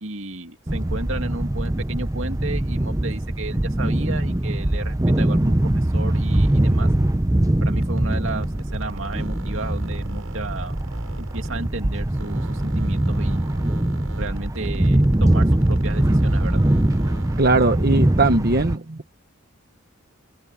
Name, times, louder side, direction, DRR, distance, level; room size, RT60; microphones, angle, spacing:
voice 1, 0.0-6.9 7.6-8.5 8.7-10.7 11.2-13.6 14.2-16.6, right 2 dB, 65° right, 2.6 m, -33 dB
sound 1, 0.7-18.8, right 1 dB, 15° right, 0.7 m, -22 dB
sound 2, 7.6-11.8 12.1-17.5, right 2 dB, 80° right, 7.2 m, -43 dB
voice 2, 17.4-19.0, right 2 dB, 45° right, 1.1 m, -19 dB
head